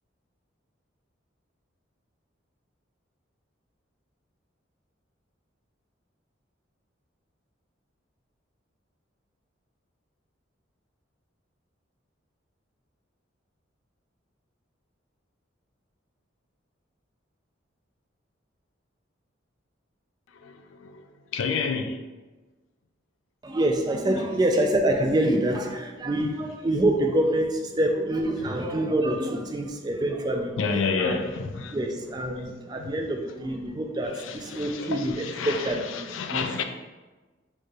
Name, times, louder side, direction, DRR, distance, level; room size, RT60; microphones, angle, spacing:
voice 1, 20.4-21.1 21.3-22.0 26.2-26.4 28.4-28.5 30.6-32.2 32.8-33.0 34.0-36.6, left 5 dB, 80° left, 0.4 m, -30 dB
voice 2, 23.4-31.2 31.7-36.6, right 1 dB, 20° right, 0.3 m, -26 dB
4.4 x 3.1 x 2.4 m
head